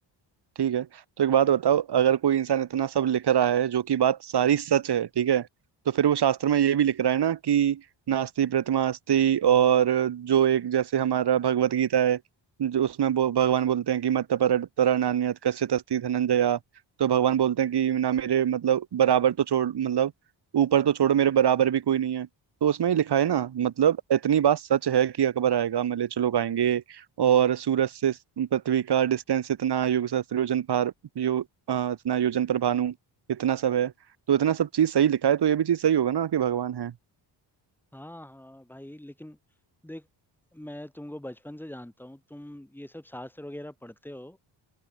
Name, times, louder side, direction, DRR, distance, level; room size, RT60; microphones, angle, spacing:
voice 1, 1.2-5.5 5.9-7.8 8.1-12.2 12.6-16.6 17.0-20.1 20.5-22.3 22.6-32.9 33.3-33.9 34.3-36.9, right 9 dB, 55° right, 2.0 m, -24 dB
voice 2, 37.9-39.4 39.8-40.1 40.5-44.4, left 1 dB, 5° left, 6.9 m, -42 dB
cardioid pair, 125°, 46 cm